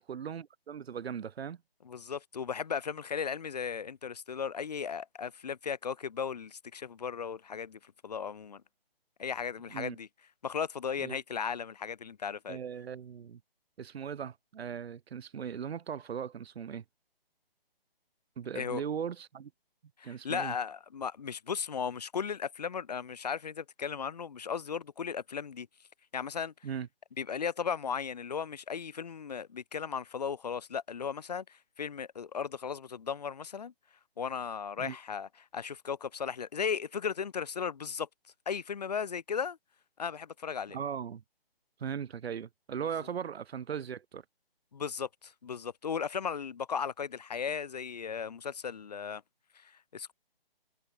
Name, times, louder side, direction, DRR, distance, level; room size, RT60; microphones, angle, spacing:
voice 1, 0.0-1.6 9.7-10.0 11.0-11.2 12.5-13.4 13.8-16.8 18.4-19.5 20.0-20.5 26.6-26.9 34.8-35.0 40.7-41.2 41.8-44.2, right 7 dB, 85° right, 0.6 m, -38 dB
voice 2, 1.8-8.6 9.2-10.1 10.4-12.6 18.5-18.8 20.0-25.7 26.1-26.5 27.2-33.7 34.2-38.1 38.5-39.6 40.0-40.8 44.7-49.2 49.6-49.7 49.9-50.1, left 6 dB, 45° left, 0.4 m, -36 dB
figure-of-eight pair, 155°, 30 cm